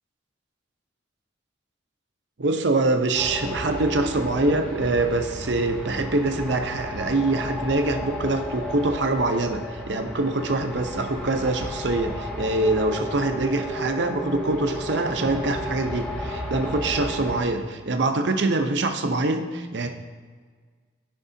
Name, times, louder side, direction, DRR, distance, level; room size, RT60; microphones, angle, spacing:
voice 1, 2.4-19.9, right 2 dB, 60° right, 6 dB, 0.7 m, -24 dB
sound 1, 3.1-17.4, equal, 5° left, 1.0 m, -33 dB
14.0 x 5.3 x 2.7 m, 1.5 s
head